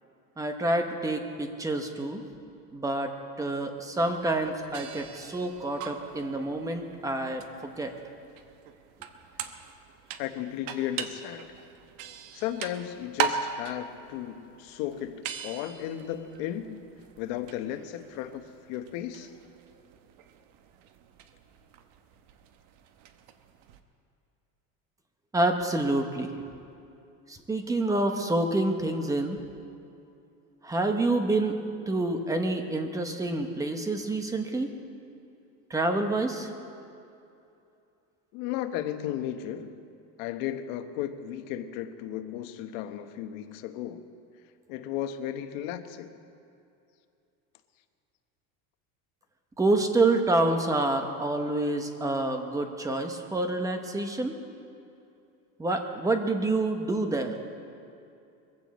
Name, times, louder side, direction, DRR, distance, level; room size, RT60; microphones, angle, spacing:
voice 1, 0.4-2.2 2.7-7.9 25.3-26.3 27.3-29.4 30.6-31.6 31.9-34.7 35.7-36.5 49.6-54.4 55.6-57.4, right 2 dB, 10° right, 5 dB, 0.8 m, -27 dB
sound 1, 4.0-23.8, right 8 dB, 60° right, 1.0 m, -40 dB
voice 2, 10.2-11.5 12.3-16.8 17.2-19.3 38.3-39.8 40.2-44.1 44.7-46.2, left 11 dB, 80° left, 9 dB, 1.1 m, -35 dB
22.0 x 15.5 x 4.2 m, 2.6 s
cardioid pair, 170°, 37 cm